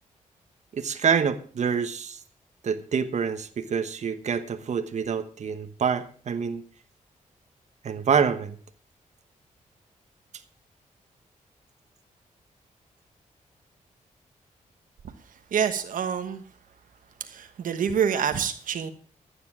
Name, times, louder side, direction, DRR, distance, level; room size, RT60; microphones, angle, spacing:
voice 1, 0.7-2.2 2.6-6.6 7.8-8.6, right 6 dB, 60° right, 8 dB, 1.2 m, -26 dB
voice 2, 15.5-16.4 17.2-18.9, right 7 dB, 85° right, 8 dB, 1.2 m, -27 dB
12.5 x 9.6 x 6.1 m, 0.43 s
wide cardioid pair, 105°, 14 cm